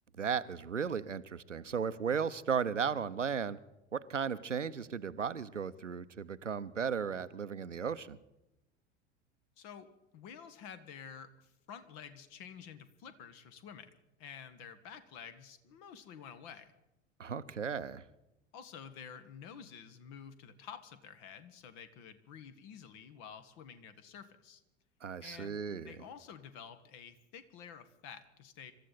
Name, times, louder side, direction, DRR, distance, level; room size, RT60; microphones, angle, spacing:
voice 1, 0.2-3.6 3.9-8.2 17.2-18.0 25.0-26.0, right 6 dB, 85° right, 15 dB, 0.6 m, -35 dB
voice 2, 9.6-13.9 14.2-16.7 18.5-24.6 25.2-25.6 25.8-28.7, left 7 dB, 45° left, 12 dB, 1.5 m, -50 dB
26.0 x 13.5 x 4.1 m, 0.90 s
figure-of-eight pair, 75°, 36 cm